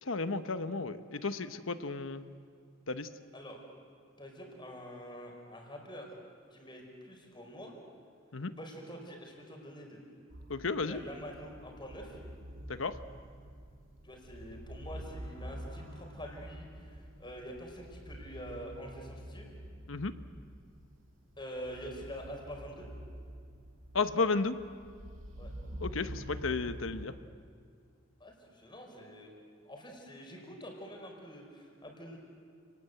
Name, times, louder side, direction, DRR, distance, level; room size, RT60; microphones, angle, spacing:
voice 1, 0.0-2.2 2.9-3.1 8.3-8.5 10.5-11.0 12.7-13.0 19.9-20.1 23.9-24.6 25.8-27.1, left 4 dB, 90° left, 10 dB, 1.1 m, -33 dB
voice 2, 4.2-6.1 6.5-7.7 8.5-10.0 10.8-12.2 14.0-19.5 21.4-22.9 25.4-25.5 28.2-29.3 29.6-32.2, equal, 25° left, 1 dB, 5.1 m, -46 dB
sound 1, 10.3-27.1, right 1 dB, 80° right, 2.4 m, -47 dB
30.0 x 19.5 x 8.0 m, 2.2 s
head